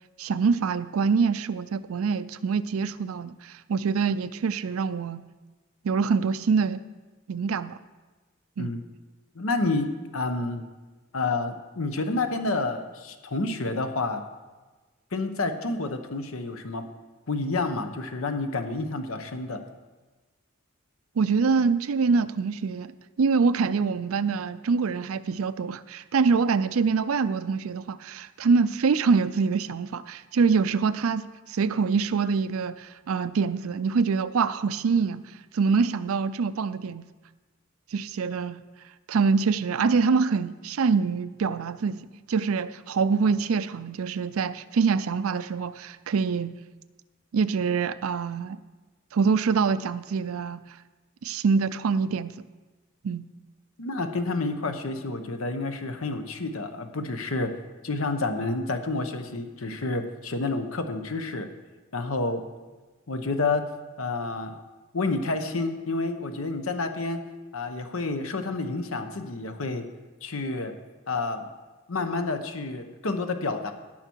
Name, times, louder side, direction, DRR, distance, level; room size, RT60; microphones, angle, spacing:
voice 1, 0.2-5.2 5.8-6.8 7.3-7.8 8.6-8.7 21.2-22.9 23.2-35.2 35.5-37.1 37.9-38.6 39.1-46.5 47.3-48.6 49.1-50.6 51.2-52.3 53.0-53.3, right 5 dB, 85° right, 14 dB, 0.5 m, -25 dB
voice 2, 9.3-10.6 11.1-14.2 15.1-16.9 17.3-19.6 53.8-57.5 57.8-61.5 61.9-62.4 63.1-63.7 64.0-64.6 64.9-67.2 67.5-69.9 70.2-70.7 71.1-71.5 71.9-73.7, left 3 dB, 80° left, 7 dB, 0.9 m, -29 dB
17.5 x 5.9 x 4.6 m, 1.3 s
head